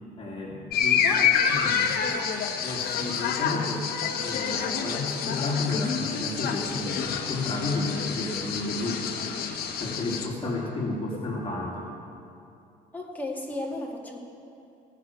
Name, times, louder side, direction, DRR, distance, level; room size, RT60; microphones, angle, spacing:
voice 1, 0.2-1.0 1.5-1.9 2.6-3.9 4.2-9.1 9.8-11.9, left 2 dB, 30° left, -4 dB, 2.5 m, -32 dB
sound 1, 0.7-10.3, left 7 dB, 65° left, 1.3 m, -28 dB
voice 2, 1.0-2.3 10.4-10.6 12.9-14.2, left 2 dB, 10° left, -1 dB, 2.2 m, -36 dB
16.5 x 6.5 x 9.4 m, 2.6 s
cardioid pair, 110°, 17 cm